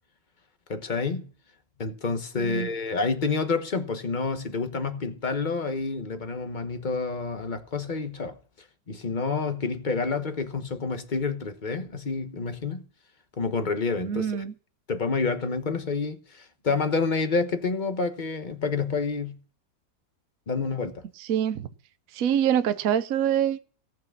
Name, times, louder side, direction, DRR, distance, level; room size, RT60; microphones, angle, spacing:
voice 1, 0.7-1.3 1.8-8.4 8.9-12.8 13.4-14.4 14.9-19.4 20.5-21.0, left 4 dB, 30° left, 1.1 m, -28 dB
voice 2, 2.4-2.7 14.0-14.5 21.2-21.7 22.1-23.6, right 9 dB, 60° right, 1.1 m, -25 dB
17.5 x 6.0 x 7.3 m
omnidirectional pair, 2.0 m